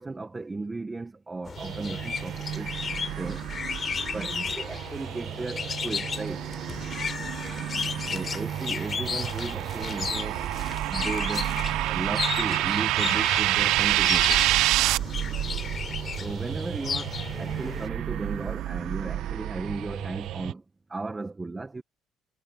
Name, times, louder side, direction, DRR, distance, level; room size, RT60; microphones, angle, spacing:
voice 1, 0.0-2.7 3.1-3.5 4.1-4.3 4.6-6.5 8.1-10.4 10.8-14.4 16.2-20.6 20.9-21.8, right 3 dB, 15° right, 1.1 m, -35 dB
sound 1, 1.5-17.9, left 6 dB, 35° left, 4.0 m, -34 dB
sound 2, 1.6-20.5, right 12 dB, 70° right, 0.8 m, -34 dB
voice 2, 4.1-4.6 7.2-8.5 15.2-15.7, right 8 dB, 45° right, 6.9 m, -46 dB
sound 3, 8.2-15.0, right 17 dB, 90° right, 0.4 m, -26 dB
cardioid pair, 120°, 0 cm